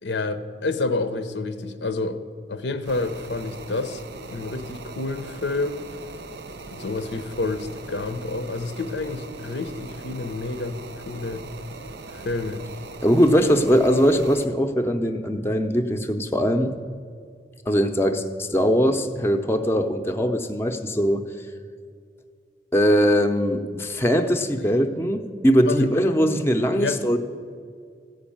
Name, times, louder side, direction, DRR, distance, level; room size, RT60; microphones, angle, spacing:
voice 1, 0.0-2.2 2.5-4.0 4.3-5.8 6.7-11.5 12.1-12.6 25.6-25.9 26.7-27.0, left 3 dB, 85° left, 10 dB, 0.8 m, -29 dB
sound 1, 2.8-14.5, right 3 dB, 70° right, 0.6 m, -40 dB
voice 2, 13.0-16.7 17.7-21.3 22.7-27.2, equal, 15° left, 5 dB, 0.6 m, -21 dB
14.0 x 5.3 x 8.6 m, 2.2 s
head